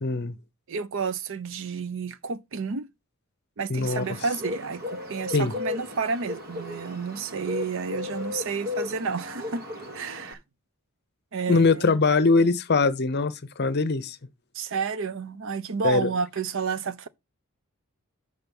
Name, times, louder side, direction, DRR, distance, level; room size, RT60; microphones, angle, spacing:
voice 1, 0.0-0.3 3.7-4.0 5.3-5.5 11.5-14.2 15.8-16.1, left 3 dB, 50° left, 0.7 m, -22 dB
voice 2, 0.7-2.8 3.6-9.6 9.9-10.4 11.3-11.9 14.5-17.1, right 5 dB, 60° right, 0.6 m, -31 dB
Bird, 3.8-10.3, left 3 dB, 45° right, 1.4 m, -35 dB
6.6 x 5.9 x 5.3 m
head